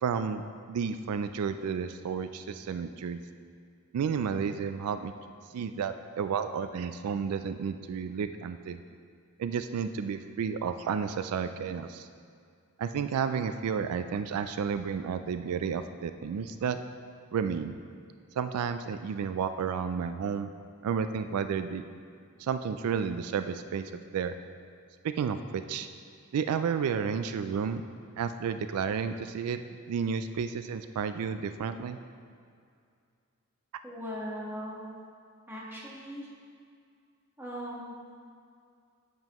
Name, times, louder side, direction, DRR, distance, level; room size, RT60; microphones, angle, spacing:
voice 1, 0.0-3.2 3.9-5.1 5.5-8.8 9.4-12.1 12.8-16.8 17.3-17.7 18.4-20.5 20.8-21.9 22.4-24.4 25.0-25.9 26.3-27.8 28.2-29.6 29.9-32.0, right 6 dB, 85° right, 10 dB, 0.3 m, -31 dB
voice 2, 33.8-34.8 35.5-36.3 37.4-38.2, equal, 10° right, -5 dB, 1.4 m, -39 dB
9.2 x 7.6 x 3.0 m, 2.3 s
head